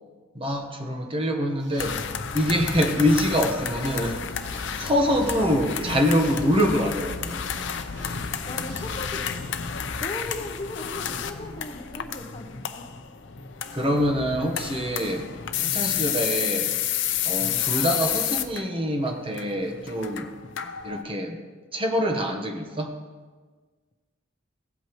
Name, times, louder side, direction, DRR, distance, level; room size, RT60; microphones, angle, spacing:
voice 1, 0.3-2.0 2.3-4.2 4.8-7.4 13.7-15.3 15.6-16.7 17.2-20.3 20.8-21.4 21.7-22.9, equal, 30° right, 3 dB, 1.1 m, -25 dB
sound 1, 1.5-9.5, right 2 dB, 75° right, 2.7 m, -48 dB
sound 2, 1.8-21.0, left 8 dB, 70° left, 0.6 m, -31 dB
voice 2, 6.4-6.7 8.2-9.5 10.0-12.8 13.6-13.8, left 1 dB, 30° left, 4 dB, 0.8 m, -38 dB
16.5 x 8.1 x 3.1 m, 1.4 s
head